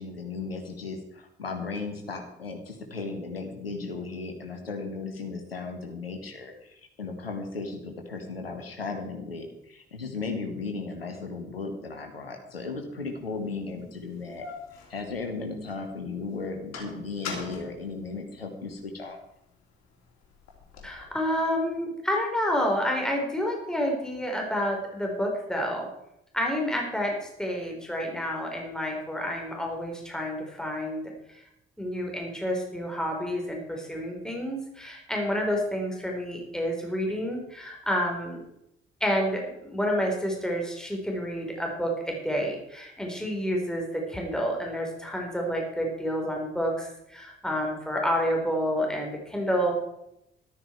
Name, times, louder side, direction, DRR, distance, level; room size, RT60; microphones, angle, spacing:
voice 1, 0.0-14.4 14.9-19.2, left 4 dB, 90° left, 4 dB, 1.4 m, -36 dB
sound 1, 13.2-13.3 14.0-15.8 16.2-18.8 19.3-21.0, left 4 dB, 65° left, 3.2 m, -42 dB
voice 2, 20.8-25.9 26.3-31.0 31.3-31.4 31.8-38.4 39.0-49.7, equal, ahead, 0 dB, 4.2 m, -29 dB
13.0 x 12.5 x 4.6 m, 0.81 s
figure-of-eight pair, 40°, 29 cm